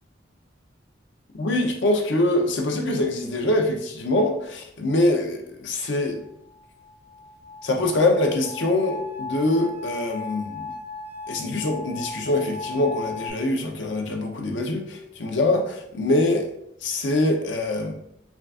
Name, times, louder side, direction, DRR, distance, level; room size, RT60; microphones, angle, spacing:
voice 1, 1.4-6.2 7.6-10.7 11.3-16.5 16.8-17.9, left 2 dB, 85° left, 3 dB, 0.7 m, -24 dB
sound 1, 6.2-13.3, left 3 dB, 25° right, 1.4 m, -37 dB
5.9 x 2.4 x 2.4 m, 0.77 s
head